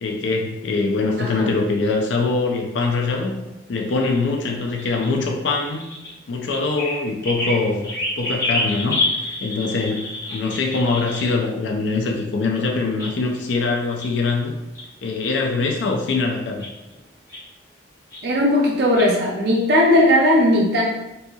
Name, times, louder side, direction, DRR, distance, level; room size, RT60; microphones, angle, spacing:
voice 1, 0.0-3.4 3.7-5.8 6.3-7.9 8.2-14.5 15.0-16.6, left 3 dB, 75° left, 1 dB, 0.4 m, -23 dB
voice 2, 1.2-1.5 18.2-20.8, left 1 dB, 55° right, -2 dB, 0.5 m, -17 dB
sound 1, 3.8-5.1 5.6-6.1 6.5-11.4 12.7-13.1 13.4-13.5 14.0-14.4 14.7-14.8 15.5-15.7 16.6-16.9 17.3-17.4 18.1-18.4 18.9-19.1, left 2 dB, 15° left, 0.7 m, -28 dB
4.1 x 2.7 x 2.3 m, 0.96 s
head